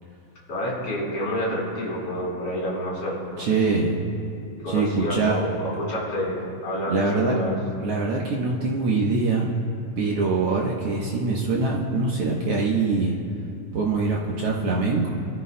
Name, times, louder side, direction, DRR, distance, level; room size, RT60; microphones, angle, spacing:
voice 1, 0.5-3.9 4.6-7.5, equal, 40° left, -6 dB, 4.0 m, -29 dB
voice 2, 3.4-3.9 4.7-5.4 6.9-7.4 7.8-9.5 10.0-13.1 13.7-15.1, right 3 dB, 85° right, -4 dB, 1.3 m, -23 dB
24.0 x 13.5 x 2.2 m, 2.5 s
omnidirectional pair, 4.2 m